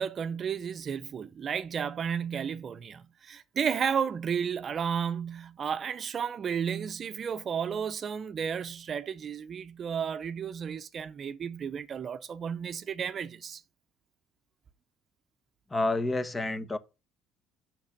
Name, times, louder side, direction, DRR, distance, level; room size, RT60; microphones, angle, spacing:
voice 1, 0.0-13.6, right 7 dB, 45° right, 0.7 m, -33 dB
voice 2, 15.7-16.8, left 2 dB, 20° left, 1.0 m, -29 dB
6.4 x 6.0 x 7.2 m
supercardioid pair, 80°, 0 cm